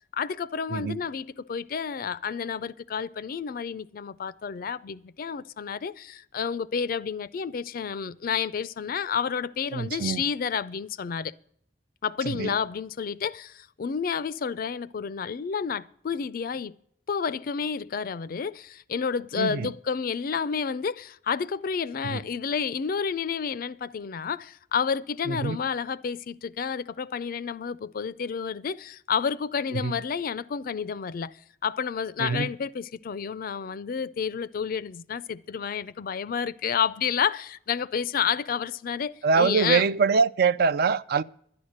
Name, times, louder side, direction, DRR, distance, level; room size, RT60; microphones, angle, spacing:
voice 1, 0.1-11.3 12.0-16.7 17.1-31.3 31.6-39.8, left 6 dB, 50° left, 0.4 m, -30 dB
voice 2, 0.7-1.0 9.7-10.2 12.3-12.5 19.4-19.7 22.0-22.2 25.3-25.6 29.7-30.0 32.2-32.5 39.2-41.2, right 5 dB, 55° right, 0.4 m, -24 dB
11.0 x 9.9 x 6.4 m
head